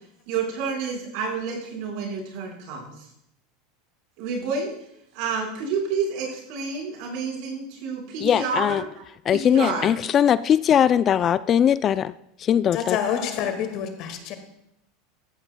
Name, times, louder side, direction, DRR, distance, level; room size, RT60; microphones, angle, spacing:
voice 1, 0.3-3.1 4.2-4.7 5.1-8.9 9.3-9.9, right 5 dB, 65° right, -1 dB, 4.7 m, -29 dB
voice 2, 8.2-8.8 9.2-12.1 12.4-13.0, left 9 dB, 40° left, 16 dB, 0.3 m, -20 dB
voice 3, 12.7-14.3, left 8 dB, 55° left, 6 dB, 1.8 m, -27 dB
15.0 x 14.0 x 2.2 m, 0.78 s
hypercardioid pair, 100°, 0 cm